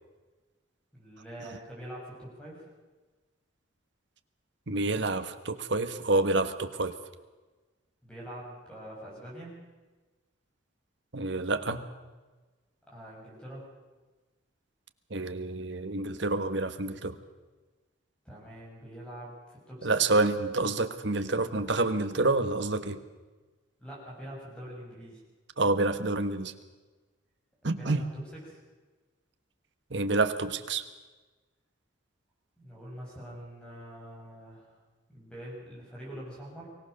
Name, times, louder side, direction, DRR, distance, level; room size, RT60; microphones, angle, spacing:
voice 1, 0.9-2.7 8.0-9.6 12.9-13.6 18.2-19.9 23.8-25.2 27.7-28.2 28.5-28.6 32.6-34.8 35.1-36.7, equal, 5° left, -4 dB, 7.5 m, -44 dB
voice 2, 4.7-6.9 11.1-11.8 15.1-17.2 19.8-23.0 25.6-26.5 27.6-28.0 29.9-30.8, right 2 dB, 65° right, 9 dB, 1.4 m, -28 dB
23.5 x 17.5 x 6.7 m, 1.3 s
head